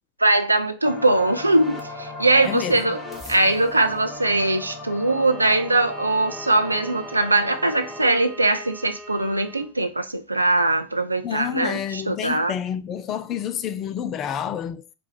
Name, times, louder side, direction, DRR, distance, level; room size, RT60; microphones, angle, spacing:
voice 1, 0.2-3.0 3.3-12.5, right 2 dB, 85° right, 0.5 m, -21 dB
sound 1, 0.8-8.1, left 2 dB, 10° left, 1.0 m, -38 dB
voice 2, 2.4-2.9 11.2-14.8, left 9 dB, 30° left, 0.4 m, -29 dB
Bowed string instrument, 4.8-9.8, right 1 dB, 15° right, 1.0 m, -41 dB
4.4 x 2.3 x 3.9 m
figure-of-eight pair, 90°, 0 cm